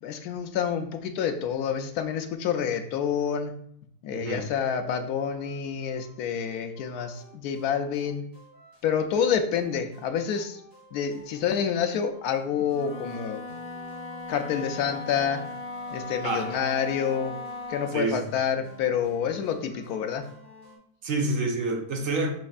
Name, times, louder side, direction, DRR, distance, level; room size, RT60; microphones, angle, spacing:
voice 1, 0.0-3.5 4.0-8.2 8.8-10.6 10.9-13.4 14.3-15.5 15.9-17.4 17.7-20.2, left 7 dB, 80° left, 7 dB, 1.1 m, -28 dB
voice 2, 4.1-4.4 16.2-16.5 17.9-18.2 21.0-22.3, right 3 dB, 65° right, 2 dB, 1.1 m, -28 dB
sound 1, 5.2-20.8, equal, 15° right, 1.4 m, -51 dB
Wind instrument woodwind instrument, 12.7-18.1, left 2 dB, 60° left, 0.3 m, -38 dB
5.2 x 4.2 x 2.4 m, 0.68 s
omnidirectional pair, 1.6 m